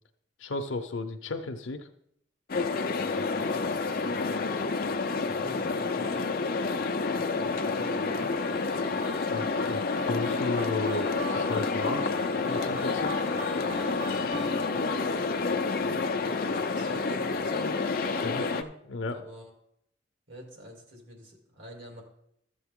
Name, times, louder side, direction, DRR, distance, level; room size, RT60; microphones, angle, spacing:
voice 1, 0.4-1.9 9.3-12.1 12.4-13.2 18.2-18.4 18.9-19.2, left 3 dB, 90° left, 4 dB, 0.7 m, -34 dB
sound 1, 2.5-18.6, left 4 dB, 50° left, 0.5 m, -29 dB
voice 2, 2.9-4.4 5.2-6.6 7.2-8.3 14.2-15.2 15.8-18.7 19.1-19.5 20.3-22.0, equal, 90° right, 0 dB, 2.9 m, -46 dB
sound 2, 7.5-14.9, right 1 dB, 35° right, 1.7 m, -41 dB
13.5 x 6.9 x 3.7 m, 0.75 s
head